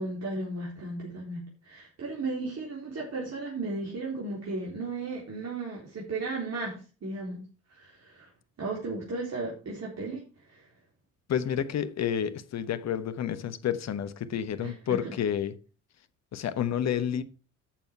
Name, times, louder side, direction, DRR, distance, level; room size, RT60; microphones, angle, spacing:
voice 1, 0.0-7.4 7.7-8.3 8.6-10.2 10.5-10.7 14.6-15.0, right 3 dB, 40° right, 3.9 m, -35 dB
voice 2, 11.3-15.5 16.3-17.2, left 9 dB, 40° left, 1.1 m, -30 dB
11.5 x 6.9 x 4.6 m
figure-of-eight pair, 55°, 41 cm